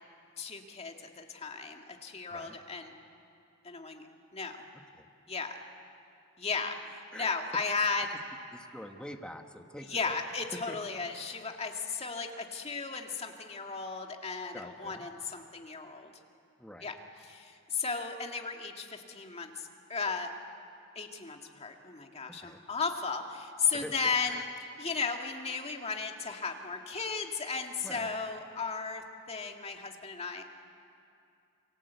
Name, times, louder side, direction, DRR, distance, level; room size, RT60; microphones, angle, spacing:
voice 1, 0.4-2.9 3.6-4.0 4.3-4.6 5.3-5.6 6.4-6.8 7.1-8.1 9.9-16.1 16.8-16.9 17.3-20.3 21.0-24.4 24.8-30.4, left 5 dB, 30° left, 3 dB, 2.0 m, -35 dB
voice 2, 6.8-7.9 8.5-10.2 10.5-10.8 14.5-15.1 16.6-16.9 22.4-22.6 23.7-24.5 27.8-28.1, equal, 5° left, 4 dB, 1.5 m, -46 dB
28.5 x 24.0 x 8.2 m, 2.5 s
head